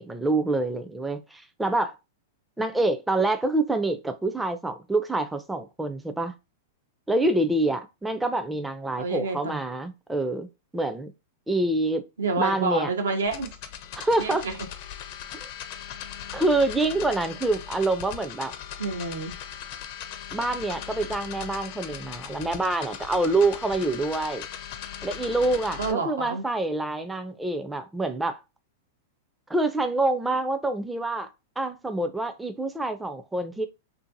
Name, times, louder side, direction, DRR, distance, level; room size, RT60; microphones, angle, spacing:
voice 1, 0.0-1.9 2.6-6.3 7.1-10.5 10.7-11.1 11.5-12.0 12.4-12.9 14.0-14.5 15.4-15.5 16.3-18.5 20.3-24.5 25.0-28.4 29.5-31.3 31.6-33.7, right 2 dB, 5° right, 0.4 m, -26 dB
voice 2, 9.0-9.6 12.2-13.5 14.2-14.5 18.8-19.4 25.8-26.4, right 4 dB, 85° right, 0.7 m, -28 dB
sound 1, 13.2-25.9, left 10 dB, 50° left, 0.5 m, -39 dB
2.5 x 2.5 x 2.6 m
hypercardioid pair, 110°, 0 cm